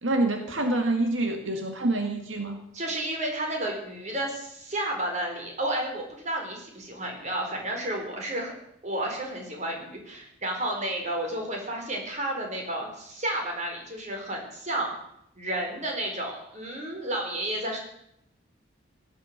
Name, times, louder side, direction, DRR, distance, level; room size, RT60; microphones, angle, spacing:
voice 1, 0.0-2.6, right 2 dB, 85° right, 4 dB, 2.0 m, -26 dB
voice 2, 2.7-8.5 8.8-14.9 15.4-17.8, right 1 dB, 40° right, 2 dB, 4.5 m, -31 dB
17.5 x 12.0 x 6.8 m, 0.76 s
head